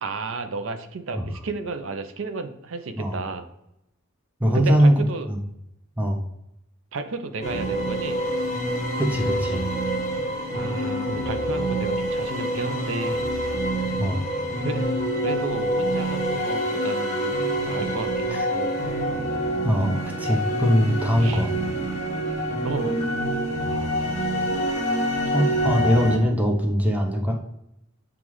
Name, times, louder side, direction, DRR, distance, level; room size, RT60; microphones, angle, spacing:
voice 1, 0.0-3.5 4.5-5.3 6.9-8.2 10.5-13.6 14.6-14.9 15.2-17.4 17.7-18.7 21.2-21.5 22.6-22.9, right 3 dB, 70° right, 8 dB, 0.5 m, -32 dB
voice 2, 4.4-5.0 5.3-5.4 6.0-6.2 9.0-9.7 14.0-14.2 18.3-18.5 19.6-21.5 25.3-27.4, equal, 5° right, 1 dB, 0.5 m, -21 dB
sound 1, 7.4-26.2, equal, 30° left, 1.0 m, -26 dB
7.1 x 2.4 x 3.0 m, 0.83 s
head